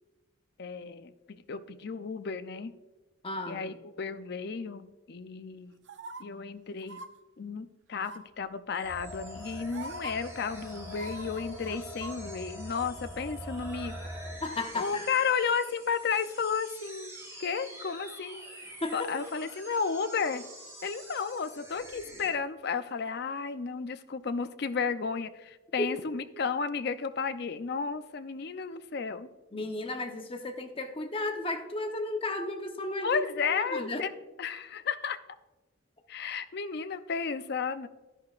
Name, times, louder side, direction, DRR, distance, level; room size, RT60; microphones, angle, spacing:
voice 1, 0.6-2.7 3.5-5.7 6.2-7.0 7.4-14.0 14.7-17.1 17.4-18.4 18.9-20.4 20.8-29.3 33.0-34.1 34.4-35.2 36.1-37.9, left 5 dB, 55° left, 11 dB, 0.5 m, -33 dB
voice 2, 3.2-3.6 14.4-15.1 18.8-19.1 25.8-25.9 29.5-33.2 33.6-34.0, left 2 dB, 30° left, 4 dB, 0.9 m, -34 dB
sound 1, 5.9-6.2 6.8-7.1 8.0-8.4 9.3-9.4 9.7-10.1 10.9-12.2 12.5-12.6, right 2 dB, 65° right, 0.7 m, -43 dB
sound 2, 8.7-22.3, right 1 dB, 15° right, 2.7 m, -48 dB
sound 3, 8.8-14.3, equal, 5° left, 3.3 m, -42 dB
11.5 x 10.5 x 2.5 m, 1.2 s
head